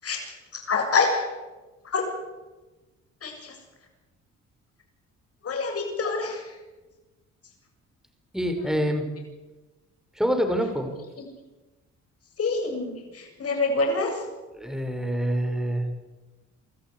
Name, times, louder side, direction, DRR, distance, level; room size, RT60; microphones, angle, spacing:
voice 1, 0.0-1.3 1.8-2.0 3.2-3.6 5.4-6.6 8.6-8.8 11.2-11.3 12.4-14.2, left 4 dB, 50° left, 3 dB, 7.6 m, -27 dB
voice 2, 8.3-9.1 10.2-10.9 14.5-15.9, equal, ahead, 5 dB, 5.3 m, -26 dB
26.5 x 14.0 x 9.7 m, 1.1 s
cardioid pair, 90°, 30 cm